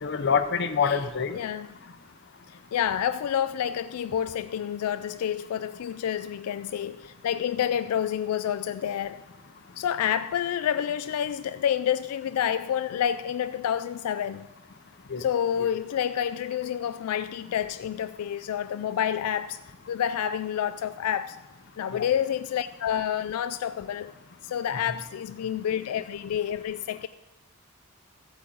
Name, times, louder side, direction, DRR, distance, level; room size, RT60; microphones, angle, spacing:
voice 1, 0.0-1.4 15.1-15.2 21.9-22.1, left 6 dB, 50° left, 0.6 m, -26 dB
voice 2, 1.3-1.7 2.5-9.2 9.8-14.5 15.2-19.6 19.9-21.4 21.8-24.1 24.4-27.1, left 9 dB, 85° left, 0.3 m, -29 dB
14.0 x 8.3 x 3.9 m
head